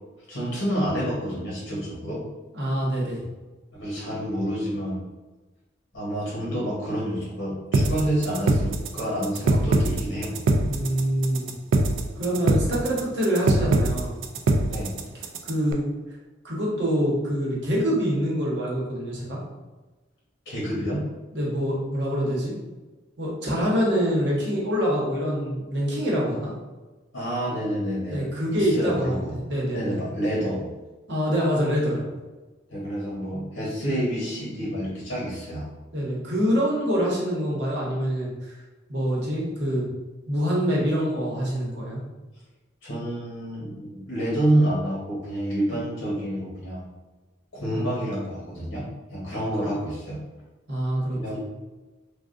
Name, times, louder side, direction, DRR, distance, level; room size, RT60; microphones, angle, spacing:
voice 1, 0.3-2.2 3.7-5.0 5.9-10.4 14.7-15.0 20.4-21.0 27.1-28.3 28.5-29.4 29.7-30.7 32.7-35.7 42.8-46.9 47.5-50.2 51.1-51.4, right 1 dB, 70° left, -7 dB, 1.0 m, -28 dB
voice 2, 2.5-3.2 10.6-11.5 12.1-14.1 15.4-15.8 16.4-19.4 21.3-22.5 23.2-26.5 28.1-30.0 31.1-32.1 35.9-38.6 38.9-39.9 40.3-42.0 47.7-47.9 49.3-49.4 50.7-51.4, equal, 60° right, -5 dB, 0.9 m, -25 dB
sound 1, 7.7-15.7, right 2 dB, 80° right, 0.3 m, -22 dB
3.4 x 2.3 x 2.5 m, 1.2 s
head